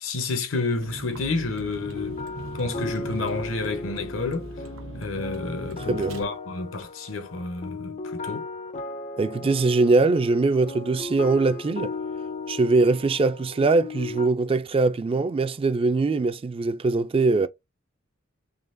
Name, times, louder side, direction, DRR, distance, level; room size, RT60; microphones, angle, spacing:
voice 1, 0.0-2.2 2.5-4.5 4.9-8.5, left 3 dB, 75° left, 0.9 m, -30 dB
Vehicle, 0.8-6.2, right 2 dB, 90° right, 0.9 m, -40 dB
sound 1, 1.8-14.3, left 3 dB, 40° left, 0.4 m, -36 dB
voice 2, 9.2-11.9 12.5-17.5, right 3 dB, 30° right, 0.3 m, -22 dB
3.7 x 3.1 x 2.6 m
head